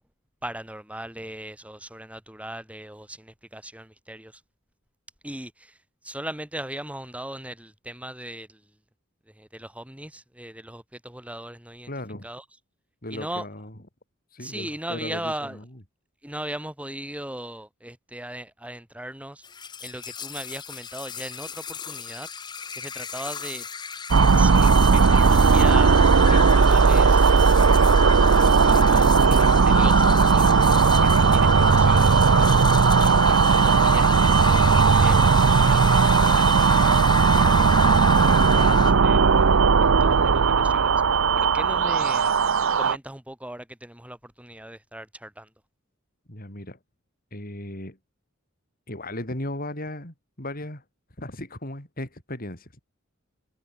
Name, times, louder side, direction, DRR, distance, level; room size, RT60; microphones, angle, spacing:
voice 1, 0.4-4.4 5.2-5.8 6.0-8.6 9.3-11.9 12.2-12.4 13.1-13.4 14.4-15.6 16.2-19.4 19.8-22.3 22.7-23.7 24.1-27.5 28.6-32.5 33.0-35.3 35.6-37.0 37.4-39.5 39.8-42.4 42.7-45.5, right 1 dB, 5° right, 6.1 m, -38 dB
voice 2, 11.9-12.3 13.0-13.7 14.3-15.7 46.3-46.8 47.3-48.0 48.9-50.8 51.2-52.9, left 1 dB, 45° left, 5.8 m, -36 dB
sound 1, 19.4-38.9, left 5 dB, 20° left, 0.7 m, -32 dB
sound 2, 24.1-43.0, right 5 dB, 75° right, 0.7 m, -17 dB
sound 3, 26.5-39.7, right 3 dB, 55° right, 1.6 m, -41 dB
head